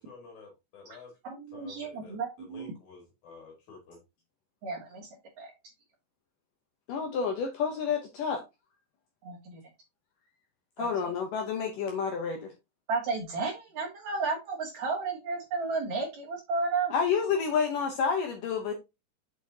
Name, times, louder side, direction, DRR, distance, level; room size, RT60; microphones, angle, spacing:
voice 1, 0.0-1.1 1.5-4.0, left 4 dB, 50° left, 3.1 m, -51 dB
voice 2, 1.2-2.7 4.6-5.1 5.4-5.5 9.2-9.6 10.8-10.9 12.9-16.9, right 4 dB, 65° right, 1.8 m, -33 dB
voice 3, 6.9-8.4 10.8-12.5 16.9-18.7, left 6 dB, 75° left, 2.0 m, -29 dB
6.9 x 6.2 x 2.8 m
omnidirectional pair, 5.1 m